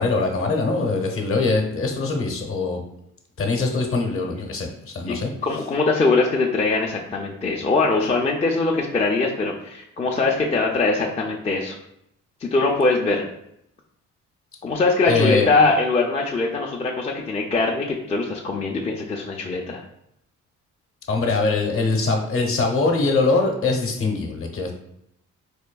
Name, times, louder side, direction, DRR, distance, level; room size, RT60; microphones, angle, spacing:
voice 1, 0.0-2.8 3.4-5.3 15.1-15.5 21.1-24.7, left 3 dB, 45° left, 3 dB, 0.8 m, -22 dB
voice 2, 5.1-11.8 12.4-13.2 14.6-19.8, left 3 dB, 20° left, -1 dB, 0.4 m, -22 dB
4.2 x 2.6 x 2.3 m, 0.77 s
cardioid pair, 90°, 30 cm